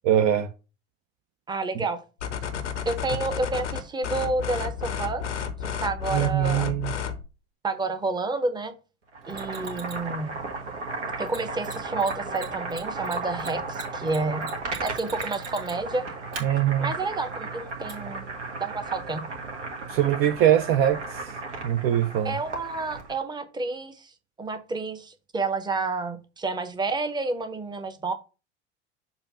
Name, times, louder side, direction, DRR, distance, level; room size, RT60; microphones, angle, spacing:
voice 1, 0.0-0.5 6.1-6.9 16.4-16.9 19.9-21.3 21.6-22.4, right 11 dB, 40° right, 0.5 m, -22 dB
voice 2, 1.5-2.0 2.9-5.2 5.6-6.8 7.6-8.8 9.3-10.4 11.2-14.4 14.8-16.0 16.8-18.2 18.6-19.2 22.2-24.1 24.4-28.1, right 3 dB, 10° right, 0.9 m, -30 dB
sound 1, 2.2-7.3, left 7 dB, 80° left, 0.8 m, -32 dB
Boiling, 9.1-23.2, right 3 dB, 75° right, 1.4 m, -35 dB
Mechanisms, 9.3-10.1 11.3-11.4 11.6-11.7 12.0-12.1 12.4-15.9 16.3-16.4 17.9-18.0, right 5 dB, 60° right, 2.0 m, -41 dB
6.9 x 2.6 x 5.5 m
figure-of-eight pair, 75°, 35 cm